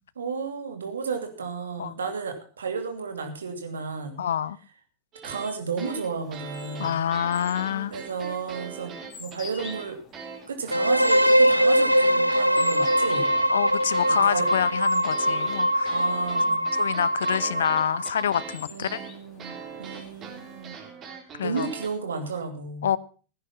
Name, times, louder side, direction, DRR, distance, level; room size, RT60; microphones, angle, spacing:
voice 1, 0.2-4.2 5.2-7.0 7.9-8.9 9.2-10.0 10.5-13.3 14.1-14.5 15.9-16.6 18.7-19.5 19.8-20.7 21.4-22.9, right 5 dB, 70° right, 2.7 m, -33 dB
voice 2, 4.2-4.6 6.8-7.9 13.5-15.9 16.8-19.0 21.4-21.7 22.8-23.0, left 9 dB, 65° left, 0.6 m, -27 dB
sound 1, 5.1-5.5 5.8-9.9 10.1-21.9, right 6 dB, 30° right, 3.8 m, -41 dB
sound 2, 6.0-21.0, left 5 dB, 30° left, 2.9 m, -48 dB
sound 3, 10.7-18.5, equal, 90° right, 0.6 m, -22 dB
16.0 x 9.7 x 5.7 m
figure-of-eight pair, 90°, 0 cm